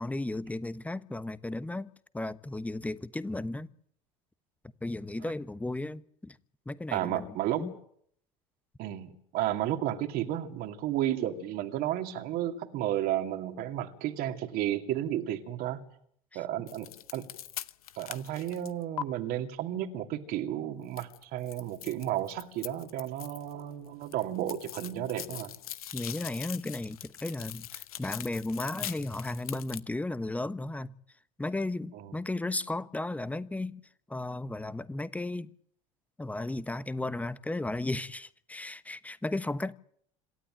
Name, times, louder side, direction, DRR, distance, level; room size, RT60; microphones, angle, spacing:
voice 1, 0.0-3.7 4.8-6.4 6.7-7.3 7.6-7.7 25.9-30.9 31.4-33.8 34.1-35.5 36.2-39.7, left 2 dB, 10° left, 1.1 m, -34 dB
voice 2, 6.9-7.6 8.8-15.8 16.3-17.3 18.0-25.5 31.9-32.1, right 12 dB, 55° right, 2.5 m, -32 dB
sound 1, 16.7-19.0 21.0-23.6 23.9-29.8, left 11 dB, 75° left, 0.9 m, -42 dB
27.0 x 13.0 x 9.0 m
figure-of-eight pair, 65°, 19 cm